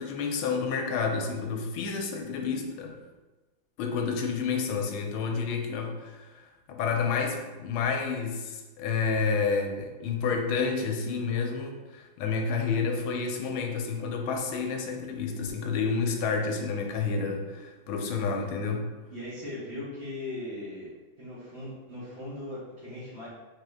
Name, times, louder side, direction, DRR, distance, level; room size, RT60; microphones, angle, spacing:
voice 1, 0.0-3.0 3.8-18.9, left 5 dB, 90° left, 3 dB, 1.4 m, -30 dB
voice 2, 19.1-20.9 21.2-23.3, left 1 dB, 40° right, -9 dB, 1.0 m, -38 dB
3.7 x 3.7 x 3.4 m, 1.2 s
omnidirectional pair, 2.3 m